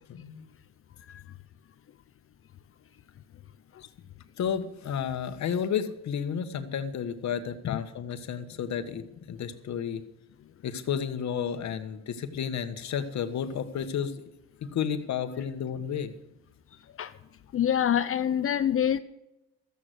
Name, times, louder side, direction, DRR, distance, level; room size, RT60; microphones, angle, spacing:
voice 1, 0.1-0.5 4.4-10.0 10.6-14.2 14.6-16.1, left 8 dB, 65° left, 10 dB, 1.3 m, -32 dB
voice 2, 17.5-19.0, left 9 dB, 45° left, 14 dB, 0.6 m, -25 dB
14.0 x 8.2 x 7.8 m, 0.90 s
cardioid pair, 90°, 30 cm